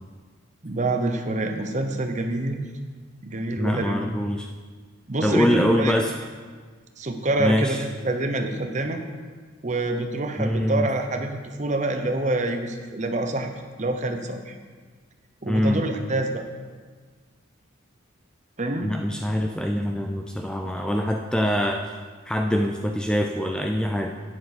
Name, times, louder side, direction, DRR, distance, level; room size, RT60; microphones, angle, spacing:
voice 1, 0.6-2.7 3.2-4.0 5.1-6.0 7.0-9.0 9.6-13.5 13.8-14.6 15.4-16.5 18.6-18.9, right 2 dB, 35° right, 6 dB, 0.8 m, -26 dB
voice 2, 3.6-4.5 5.2-6.1 7.4-7.8 10.4-10.9 15.5-15.9 18.8-21.8 22.3-24.1, equal, 5° left, 3 dB, 0.4 m, -24 dB
11.0 x 9.6 x 4.2 m, 1.5 s
head